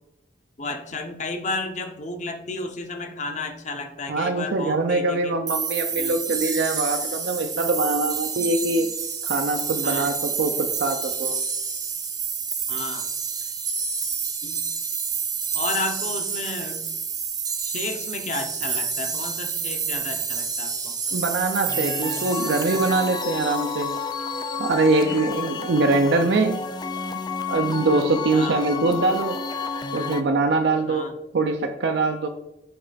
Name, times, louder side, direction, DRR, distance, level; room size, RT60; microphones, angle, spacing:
voice 1, 0.6-5.4 6.0-6.2 9.8-10.1 12.7-13.1 14.4-14.6 15.5-16.9 17.6-21.0 28.3-28.6 30.9-31.1, left 3 dB, 40° left, 6 dB, 0.8 m, -32 dB
voice 2, 4.1-8.9 9.2-11.4 21.1-24.0 24.6-26.6 27.5-29.4 29.9-31.1 31.3-32.3, right 3 dB, 65° right, 5 dB, 0.5 m, -23 dB
sound 1, 5.5-24.2, right 6 dB, 20° right, 0.7 m, -29 dB
sound 2, 21.7-30.2, left 4 dB, 20° left, 0.3 m, -31 dB
8.5 x 3.2 x 4.0 m, 0.90 s
head